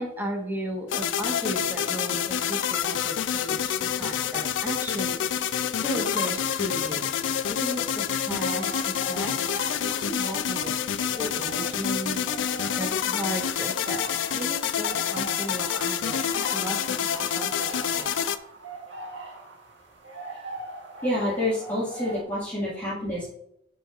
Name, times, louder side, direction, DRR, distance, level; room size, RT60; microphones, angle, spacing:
voice 1, 0.0-5.2 5.6-7.1 7.5-9.4 9.8-10.7 11.1-12.2 12.8-16.2 16.5-16.8 17.1-18.1, right 1 dB, 10° right, 0 dB, 1.2 m, -35 dB
sound 1, 0.9-18.4, left 8 dB, 75° left, 0.4 m, -28 dB
sound 2, 6.1-22.2, right 3 dB, 70° right, 1.7 m, -42 dB
voice 2, 21.0-23.3, left 1 dB, 10° left, -9 dB, 1.8 m, -28 dB
9.8 x 5.0 x 2.4 m, 0.77 s
head